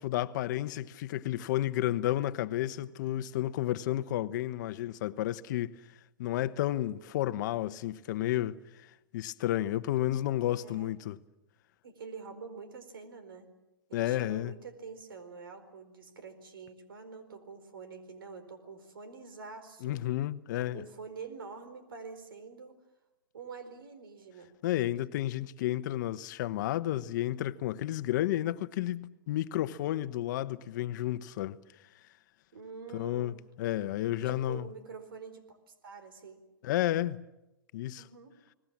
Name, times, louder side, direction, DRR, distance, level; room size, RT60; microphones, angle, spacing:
voice 1, 0.0-5.8 6.2-8.9 9.1-11.2 13.9-14.5 19.8-20.8 24.6-31.6 32.9-34.7 36.6-37.2 37.7-38.1, left 13 dB, 60° left, 1.0 m, -31 dB
voice 2, 10.5-10.9 11.8-13.5 13.9-20.0 20.5-22.8 23.3-24.5 32.5-33.4 34.1-36.4 38.0-38.3, right 5 dB, 80° right, 4.3 m, -46 dB
29.5 x 20.0 x 7.4 m
hypercardioid pair, 120°, 12 cm